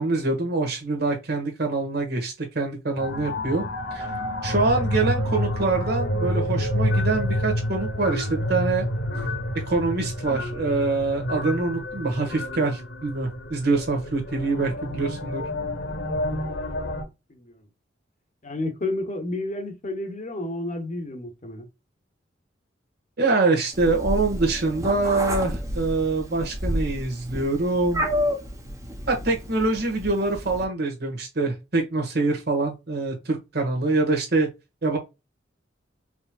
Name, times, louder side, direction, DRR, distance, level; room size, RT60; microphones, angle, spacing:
voice 1, 0.0-4.1 4.4-8.9 9.7-15.4 23.2-28.0 29.1-34.5 34.8-35.0, right 3 dB, 60° right, 1.6 m, -25 dB
sound 1, 3.0-17.0, left 1 dB, 80° left, 1.3 m, -28 dB
voice 2, 16.6-17.6 18.4-21.7, left 2 dB, 40° left, 1.0 m, -32 dB
Meow, 23.7-30.6, equal, 20° right, 1.0 m, -30 dB
5.3 x 3.1 x 2.4 m
head